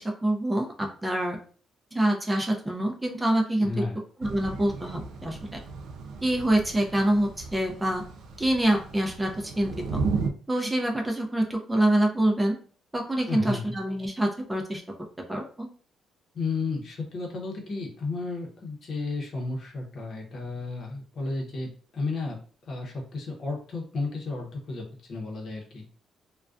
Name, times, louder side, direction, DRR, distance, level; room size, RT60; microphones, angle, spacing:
voice 1, 0.0-1.4 1.9-3.7 4.2-5.4 6.2-8.0 8.4-10.0 10.5-12.5 12.9-14.8 15.3-15.7, right 1 dB, 15° right, 1 dB, 0.5 m, -26 dB
voice 2, 3.6-4.0 13.3-13.7 16.3-22.4 22.7-25.9, left 3 dB, 55° left, 0 dB, 0.8 m, -33 dB
Thunder / Rain, 4.2-10.3, right 4 dB, 80° right, 0.3 m, -35 dB
2.3 x 2.2 x 2.5 m, 0.43 s
cardioid pair, 90°, 0 cm